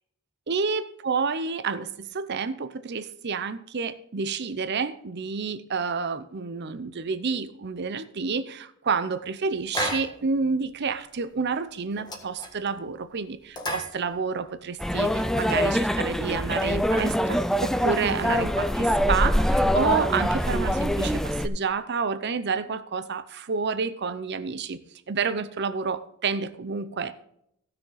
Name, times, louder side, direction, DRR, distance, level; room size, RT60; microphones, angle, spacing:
voice 1, 0.5-24.8 25.1-27.2, right 5 dB, 55° right, 0.6 m, -29 dB
sound 1, 9.7-10.4 10.7-10.8 11.2-11.4 11.7-12.9 13.4-14.5 14.9-15.6 16.1-16.2 16.4-17.2 17.9-18.8, equal, 20° left, 1.5 m, -35 dB
sound 2, 14.8-21.5, equal, ahead, 0.4 m, -24 dB
15.5 x 6.4 x 4.0 m
head